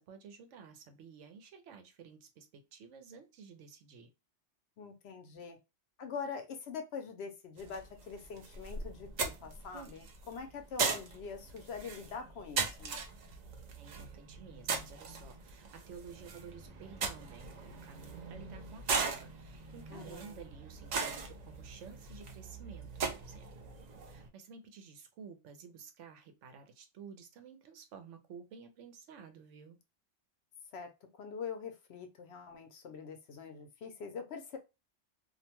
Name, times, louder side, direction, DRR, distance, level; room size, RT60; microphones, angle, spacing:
voice 1, 0.0-4.1 13.8-23.5 24.1-29.8, right 6 dB, 80° right, 1.0 m, -52 dB
voice 2, 4.8-5.6 6.0-13.0 19.9-20.5 30.7-34.6, left 5 dB, 65° left, 0.8 m, -44 dB
sound 1, 7.6-24.3, right 4 dB, 60° right, 0.4 m, -39 dB
2.5 x 2.1 x 2.8 m
omnidirectional pair, 1.2 m